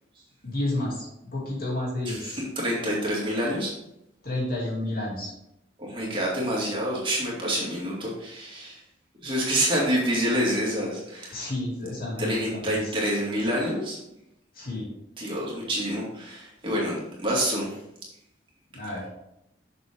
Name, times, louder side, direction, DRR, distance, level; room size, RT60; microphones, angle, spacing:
voice 1, 0.4-1.1 1.3-2.4 4.2-5.3 11.3-12.9 14.5-14.9 18.7-19.1, left 1 dB, 50° left, -4 dB, 2.8 m, -30 dB
voice 2, 2.1-3.7 5.8-8.8 9.2-11.4 12.2-14.0 15.2-17.8, equal, 25° right, -4 dB, 2.4 m, -27 dB
7.2 x 6.7 x 3.7 m, 0.83 s
head